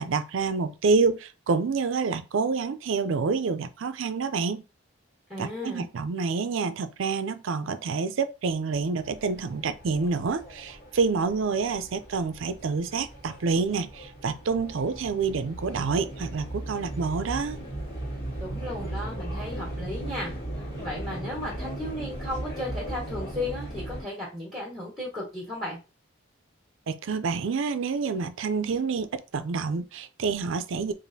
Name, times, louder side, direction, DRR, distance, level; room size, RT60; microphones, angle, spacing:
voice 1, 0.0-4.6 5.4-17.6 26.9-29.1 29.3-30.9, right 4 dB, 65° right, 0.4 m, -28 dB
voice 2, 5.3-5.9 18.4-20.3 20.8-25.8, left 1 dB, ahead, 1.4 m, -35 dB
sound 1, 9.0-24.0, right 1 dB, 50° left, 1.9 m, -37 dB
4.9 x 2.5 x 2.7 m
head